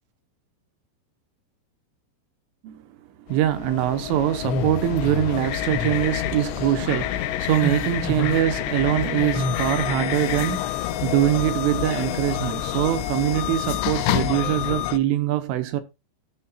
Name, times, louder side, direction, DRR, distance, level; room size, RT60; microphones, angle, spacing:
sound 1, 3.3-15.0, left 13 dB, 80° left, 2.7 m, -28 dB
voice 1, 3.3-15.8, right 13 dB, 85° right, 3.6 m, -23 dB
sound 2, 4.4-5.3 5.7-6.0 6.3-6.8 7.5-8.4 9.3-9.7, left 1 dB, 45° left, 3.3 m, -28 dB
13.0 x 9.8 x 2.4 m
omnidirectional pair, 5.6 m